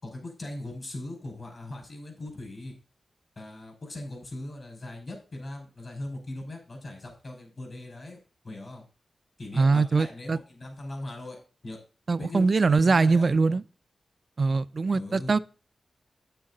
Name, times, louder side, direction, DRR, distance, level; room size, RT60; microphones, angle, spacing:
voice 1, 0.0-2.7 3.4-8.2 8.4-8.8 9.4-11.4 11.6-11.8 12.2-13.3 14.9-15.4, left 2 dB, 50° left, 5.5 m, -39 dB
voice 2, 9.6-10.4 12.1-13.6 14.4-15.4, right 4 dB, 50° right, 0.5 m, -22 dB
9.0 x 8.6 x 4.1 m
wide cardioid pair, 80°, 0 cm